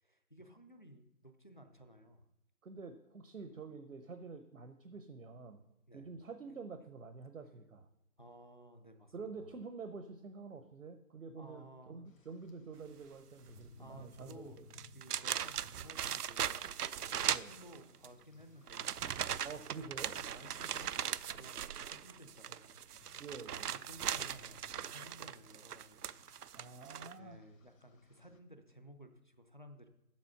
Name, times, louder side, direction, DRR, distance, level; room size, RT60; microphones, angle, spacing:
voice 1, 0.0-2.3 5.9-6.1 8.2-9.1 9.4-9.5 11.4-12.0 13.8-14.6 14.9-16.8 17.1-19.4 20.2-26.2 27.1-29.9, equal, 35° left, 7 dB, 0.5 m, -56 dB
voice 2, 2.6-5.6 5.9-7.9 9.1-14.6 17.3-17.5 19.4-20.2 23.2-23.7 26.5-27.4, right 4 dB, 60° right, 8 dB, 0.8 m, -48 dB
Rain, 12.0-28.4, left 3 dB, 60° left, 1.2 m, -64 dB
sound 1, 14.2-14.3 14.7-18.1 18.7-27.1, right 9 dB, 90° right, 0.5 m, -39 dB
7.4 x 7.0 x 5.8 m, 0.95 s
figure-of-eight pair, 165°, 45 cm